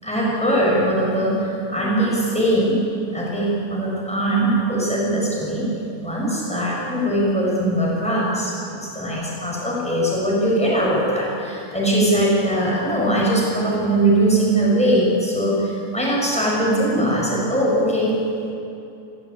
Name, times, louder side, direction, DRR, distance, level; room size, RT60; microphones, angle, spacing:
voice 1, 0.0-2.8 3.1-5.7 6.0-8.5 8.9-18.2, right 1 dB, 5° left, -5 dB, 7.1 m, -21 dB
28.0 x 15.5 x 8.9 m, 2.8 s
omnidirectional pair, 1.7 m